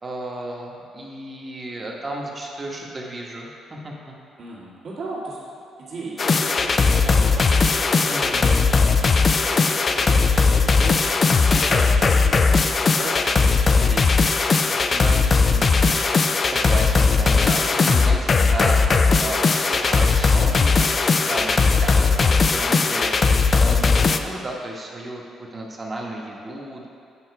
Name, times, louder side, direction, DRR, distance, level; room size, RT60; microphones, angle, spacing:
voice 1, 0.0-4.1 8.1-8.5 11.5-11.9 13.7-25.2 25.5-26.9, right 1 dB, 30° right, -2 dB, 1.2 m, -33 dB
voice 2, 4.4-5.4 5.8-11.0 12.1-13.3, right 3 dB, 60° right, -7 dB, 1.8 m, -37 dB
sound 1, 6.2-24.2, left 4 dB, 40° left, 0.4 m, -18 dB
8.7 x 3.8 x 4.7 m, 2.5 s
cardioid pair, 90°, 0 cm